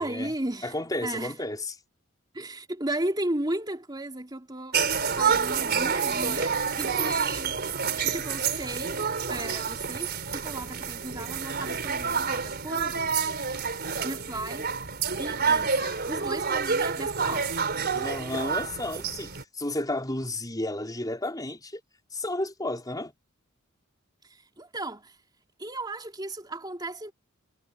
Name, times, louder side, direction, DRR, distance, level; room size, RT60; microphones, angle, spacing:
voice 1, 0.0-0.7 1.0-1.3 2.3-7.6 8.0-13.4 13.7-14.7 15.2-17.7 24.2-25.2 25.6-27.1, right 1 dB, 20° right, 3.6 m, -35 dB
voice 2, 0.6-1.7 17.9-21.8 22.1-23.1, left 1 dB, 20° left, 4.7 m, -32 dB
sound 1, 4.7-19.4, right 6 dB, 50° right, 4.3 m, -28 dB
head